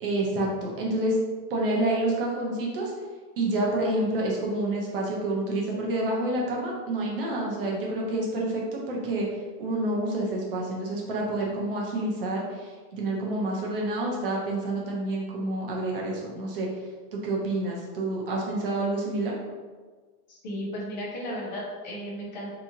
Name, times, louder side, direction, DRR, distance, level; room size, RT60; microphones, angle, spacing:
voice 1, 0.0-1.2 1.5-2.9 3.4-9.3 9.6-16.7 17.1-19.3, right 1 dB, 35° right, -2 dB, 0.5 m, -28 dB
voice 2, 20.3-22.6, equal, 30° left, -4 dB, 0.4 m, -35 dB
2.9 x 2.7 x 3.6 m, 1.4 s
supercardioid pair, 180°, 48 cm